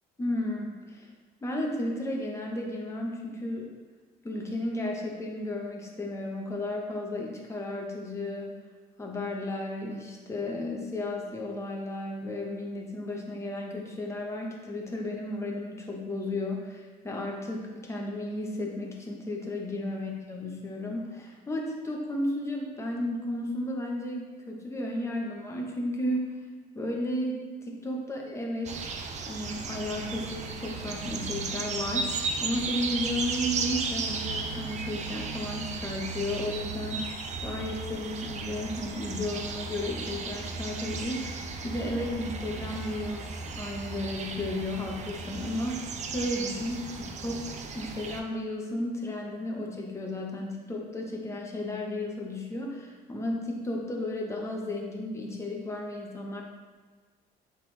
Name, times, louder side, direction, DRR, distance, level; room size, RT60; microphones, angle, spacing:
voice 1, 0.2-1.1 1.4-3.7 4.2-8.5 9.0-26.4 26.7-28.7 29.2-37.1 37.4-41.4 41.6-47.4 47.7-56.4, left 1 dB, 15° left, -1 dB, 1.1 m, -33 dB
sound 1, 28.6-48.2, right 4 dB, 45° right, 0.6 m, -35 dB
7.5 x 3.8 x 3.3 m, 1.4 s
cardioid pair, 110°, 17 cm